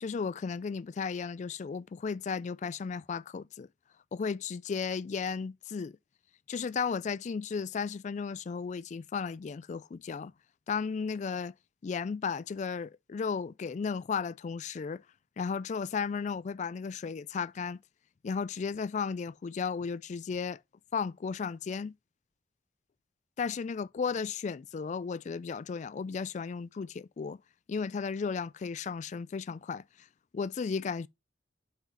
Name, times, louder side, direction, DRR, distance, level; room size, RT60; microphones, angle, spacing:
voice 1, 0.0-3.7 4.1-6.0 6.5-10.3 10.7-11.5 11.8-15.0 15.4-17.8 18.2-20.6 20.9-21.9 23.4-27.4 27.7-29.8 30.3-31.1, left 5 dB, 40° left, 0.3 m, -34 dB
5.7 x 4.8 x 5.5 m
head